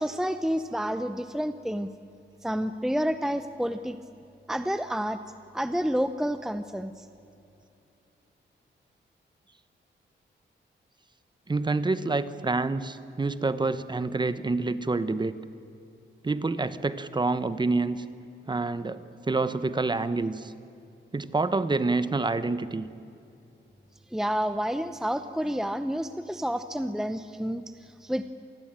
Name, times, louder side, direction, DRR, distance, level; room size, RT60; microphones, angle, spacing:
voice 1, 0.0-1.9 2.4-4.0 4.5-5.2 5.5-7.1 24.1-28.3, equal, ahead, 10 dB, 0.7 m, -29 dB
voice 2, 11.5-15.3 16.2-18.0 18.5-20.5 21.1-22.9, right 3 dB, 20° right, 13 dB, 1.0 m, -27 dB
27.0 x 20.0 x 8.9 m, 2.7 s
wide cardioid pair, 150°, 20 cm